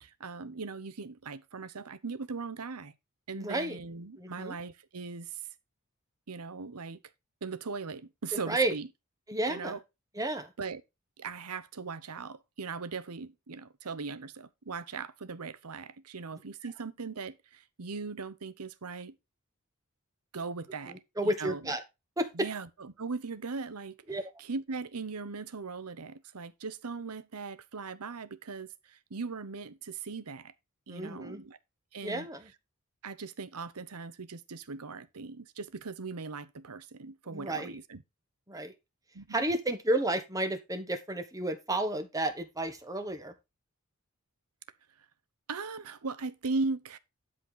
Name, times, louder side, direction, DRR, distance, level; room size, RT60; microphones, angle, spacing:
voice 1, 0.0-2.9 3.3-5.4 6.3-7.0 7.4-8.9 9.5-9.8 10.6-10.8 11.2-19.2 20.3-21.8 22.3-30.5 30.9-31.6 31.9-32.3 33.0-38.0 39.1-39.4 45.5-47.0, right 4 dB, 90° right, 0.9 m, -39 dB
voice 2, 3.3-3.8 4.2-4.6 8.3-8.7 9.3-9.8 10.1-10.5 20.9-21.8 22.2-22.5 24.1-24.2 30.9-31.4 32.0-32.5 37.3-37.8 38.5-38.7 39.3-43.3, right 1 dB, 15° right, 1.4 m, -32 dB
12.0 x 5.3 x 3.9 m
head